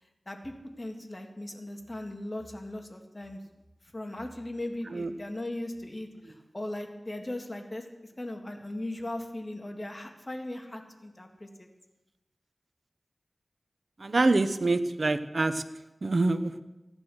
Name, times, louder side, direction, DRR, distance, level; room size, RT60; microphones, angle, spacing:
voice 1, 0.3-3.4 3.9-7.9 8.2-11.7, left 1 dB, 35° left, 3 dB, 2.0 m, -38 dB
voice 2, 14.0-15.6 16.0-16.6, right 2 dB, 60° right, 11 dB, 0.9 m, -25 dB
14.5 x 10.5 x 6.4 m, 1.0 s
wide cardioid pair, 50°, 0 cm